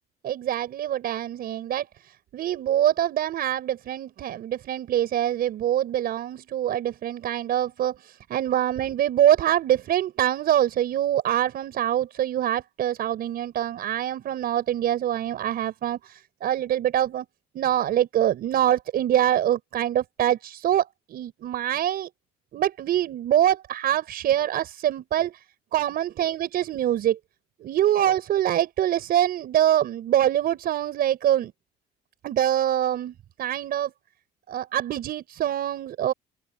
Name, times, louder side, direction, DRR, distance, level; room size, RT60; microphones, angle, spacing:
voice 1, 0.2-1.9 2.3-17.2 17.5-22.1 22.5-25.4 25.7-27.2 27.6-31.5 32.2-33.9 34.5-36.1, right 11 dB, 65° right, 5.6 m, -24 dB
open air
cardioid pair, 110°, 17 cm